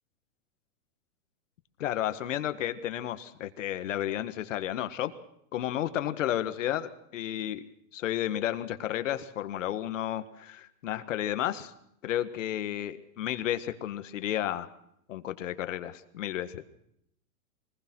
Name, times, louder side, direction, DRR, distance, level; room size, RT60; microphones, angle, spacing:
voice 1, 1.8-5.1 5.5-7.6 7.9-11.7 12.0-14.7 15.1-16.6, left 12 dB, 55° left, 11 dB, 1.6 m, -32 dB
24.0 x 20.0 x 6.2 m, 0.74 s
supercardioid pair, 170°, 46 cm